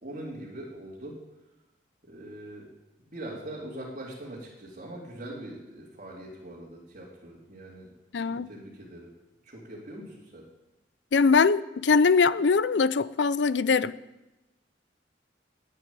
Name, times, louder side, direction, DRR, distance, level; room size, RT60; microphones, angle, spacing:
voice 1, 0.0-1.2 2.0-2.7 3.0-7.9 8.3-9.1 9.4-10.5, right 1 dB, 45° right, -6 dB, 2.6 m, -42 dB
voice 2, 8.1-8.5 11.1-13.9, left 5 dB, 70° left, 17 dB, 0.5 m, -22 dB
10.5 x 9.3 x 9.4 m, 1.0 s
head